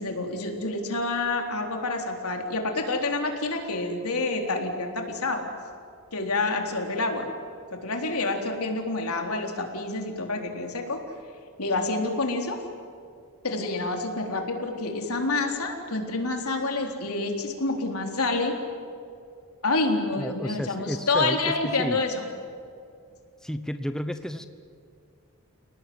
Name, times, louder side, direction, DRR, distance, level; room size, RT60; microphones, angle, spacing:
voice 1, 0.0-5.5 6.1-7.3 7.7-11.0 11.6-12.6 13.4-18.6 19.6-22.3, left 2 dB, 90° left, 3 dB, 3.9 m, -28 dB
voice 2, 20.2-22.0 23.4-24.5, equal, 5° left, 9 dB, 0.9 m, -32 dB
30.0 x 19.0 x 9.5 m, 2.4 s
head